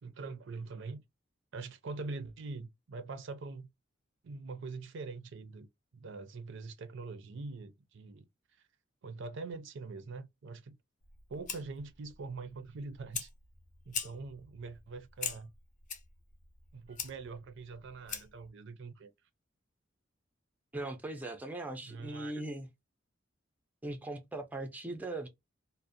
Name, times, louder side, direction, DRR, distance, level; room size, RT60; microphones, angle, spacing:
voice 1, 0.0-1.0 1.5-3.7 4.2-5.7 5.9-8.6 9.0-10.8 11.3-13.3 13.9-15.5 16.7-19.1 21.8-22.4, right 3 dB, 65° right, 0.5 m, -43 dB
Fire, 11.0-18.5, left 6 dB, 40° left, 0.6 m, -43 dB
voice 2, 20.7-22.7 23.8-25.3, right 2 dB, 10° right, 0.4 m, -39 dB
2.5 x 2.0 x 2.5 m
head